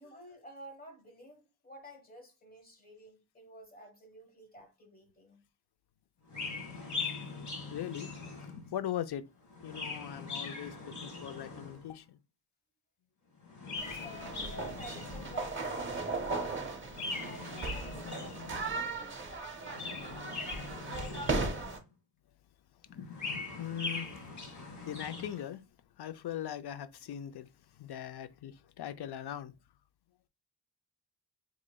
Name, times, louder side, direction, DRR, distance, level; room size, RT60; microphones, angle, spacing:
voice 1, 0.0-5.4 13.8-16.6 17.2-18.5, right 1 dB, 20° left, 1.1 m, -51 dB
Chirp tweet, 6.3-8.8 9.4-11.9 13.4-15.6 16.9-18.8 19.5-21.8 22.9-25.4, left 4 dB, 45° left, 1.3 m, -41 dB
voice 2, 7.7-8.1 8.7-9.2 9.6-12.2 23.1-24.1 24.6-25.6 26.0-27.5 27.8-29.5, left 10 dB, 70° left, 0.5 m, -40 dB
sound 1, 13.8-21.8, right 3 dB, 30° right, 0.7 m, -37 dB
4.8 x 3.0 x 2.2 m
wide cardioid pair, 135°, 41 cm